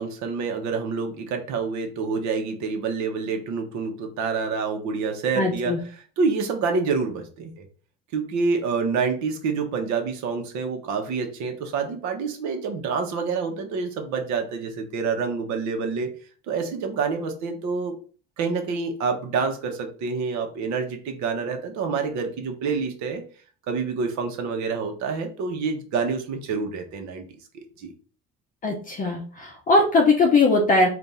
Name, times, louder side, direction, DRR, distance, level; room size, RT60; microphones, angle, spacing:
voice 1, 0.0-7.6 8.1-16.1 16.5-17.9 18.4-23.2 23.7-27.2 27.8-27.9, right 5 dB, 70° right, 5 dB, 1.0 m, -27 dB
voice 2, 5.4-5.8 28.6-30.9, left 3 dB, 30° left, 0 dB, 0.6 m, -20 dB
3.5 x 2.5 x 4.0 m, 0.39 s
cardioid pair, 155°, 30 cm